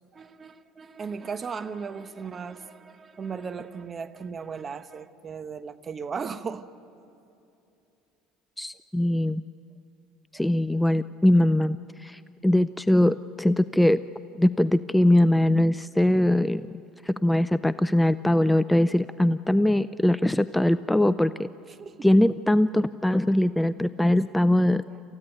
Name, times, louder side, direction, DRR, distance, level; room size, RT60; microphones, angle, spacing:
voice 1, 0.1-6.7 10.3-10.5 21.7-22.1 24.9-25.0, right 5 dB, 35° right, 11 dB, 1.1 m, -37 dB
voice 2, 8.6-9.4 10.3-14.0 14.3-16.7 17.0-21.5 22.0-24.8, left 1 dB, 5° left, 15 dB, 0.4 m, -22 dB
27.5 x 15.0 x 9.3 m, 2.8 s
hypercardioid pair, 85°, 0 cm